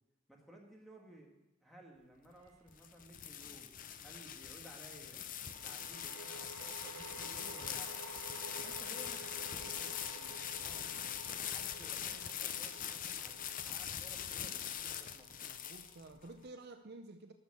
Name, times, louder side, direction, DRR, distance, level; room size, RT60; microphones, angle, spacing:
voice 1, 0.3-1.3 1.6-3.7 4.0-5.2 5.6-8.0 8.6-10.9 11.4-15.3, right 1 dB, ahead, -1 dB, 1.9 m, -57 dB
sound 1, 2.4-2.6 5.4-16.8, right 3 dB, 80° right, 0.9 m, -52 dB
sound 2, 2.5-16.3, left 9 dB, 40° left, 0.5 m, -42 dB
voice 2, 15.4-17.3, right 2 dB, 45° right, 7 dB, 0.6 m, -51 dB
13.0 x 6.3 x 6.9 m, 1.0 s
head